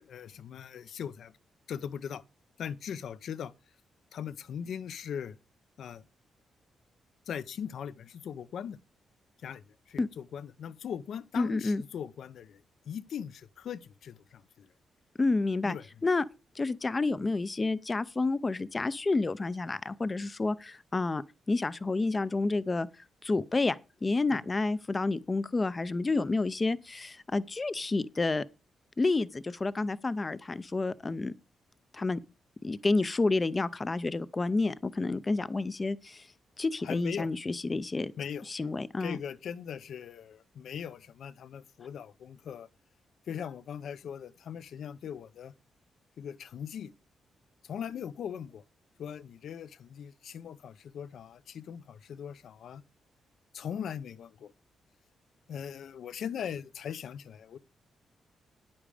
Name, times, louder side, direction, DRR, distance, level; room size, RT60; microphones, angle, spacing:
voice 1, 0.0-1.3 1.7-2.2 2.6-3.5 4.1-5.4 5.8-6.0 7.3-8.8 9.4-14.7 15.6-15.8 24.3-24.4 36.8-37.3 38.2-38.5 39.0-42.7 43.3-45.5 46.2-46.9 47.6-48.6 49.0-52.8 53.5-54.5 55.5-57.6, left 8 dB, 60° left, 0.6 m, -40 dB
voice 2, 11.4-11.8 15.2-15.8 16.0-16.2 16.6-22.9 23.2-28.4 29.0-31.3 31.9-32.2 32.6-36.3 36.6-38.1 38.5-39.2, left 3 dB, 20° left, 0.5 m, -29 dB
10.0 x 8.7 x 4.9 m
wide cardioid pair, 175°, 0 cm